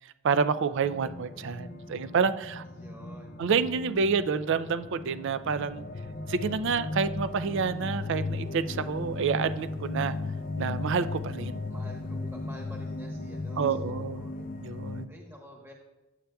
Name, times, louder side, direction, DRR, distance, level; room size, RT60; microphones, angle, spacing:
voice 1, 0.2-2.6 3.4-5.8 6.3-10.2 10.6-11.6 13.6-14.2 14.6-15.1, right 5 dB, 55° right, 14 dB, 0.4 m, -28 dB
sound 1, 0.8-15.1, left 2 dB, 40° left, 0.4 m, -36 dB
voice 2, 2.6-3.4 11.7-14.5 15.1-15.7, equal, 10° right, -1 dB, 1.1 m, -49 dB
10.0 x 8.1 x 2.3 m, 1.1 s
head